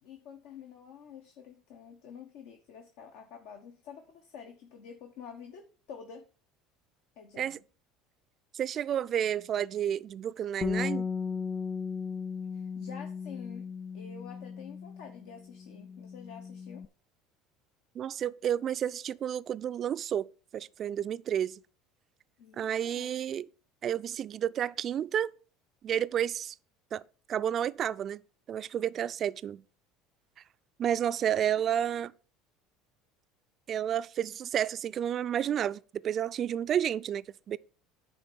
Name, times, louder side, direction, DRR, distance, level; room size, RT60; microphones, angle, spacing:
voice 1, 0.0-6.3 7.2-7.6 12.5-13.7 13.9-16.8 22.4-23.1 31.6-32.0, left 7 dB, 70° left, 1.1 m, -48 dB
voice 2, 8.5-11.1 18.0-20.3 20.5-21.6 22.6-23.5 23.8-25.3 25.8-26.5 26.9-27.0 27.3-28.2 28.5-29.6 30.8-32.1 33.7-37.6, right 9 dB, 45° right, 0.3 m, -31 dB
Bass guitar, 10.6-16.9, left 5 dB, 25° left, 0.4 m, -36 dB
10.0 x 3.5 x 7.0 m
hypercardioid pair, 75°, 0 cm